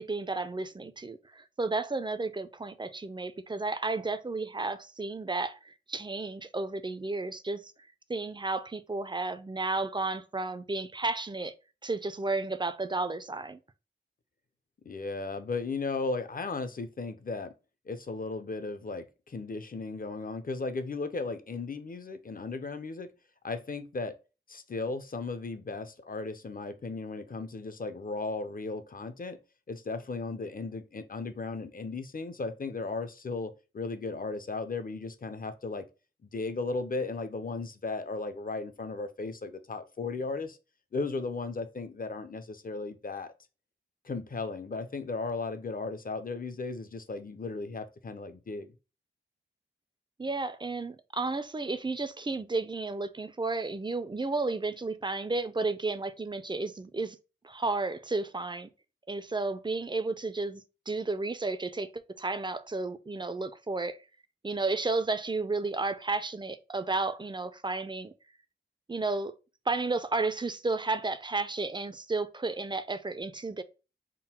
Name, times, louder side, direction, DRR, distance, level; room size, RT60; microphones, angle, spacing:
voice 1, 0.0-7.6 8.1-11.5 11.8-13.6 50.2-57.2 57.4-58.7 59.1-64.0 64.4-68.1 68.9-69.3 69.7-73.6, right 3 dB, 20° right, 0.4 m, -32 dB
voice 2, 14.8-17.5 17.9-23.1 23.4-24.2 24.5-29.4 29.7-35.9 36.2-40.6 40.9-43.3 44.0-48.7, left 3 dB, 45° left, 0.6 m, -36 dB
3.7 x 2.2 x 4.2 m
wide cardioid pair, 85°, 21 cm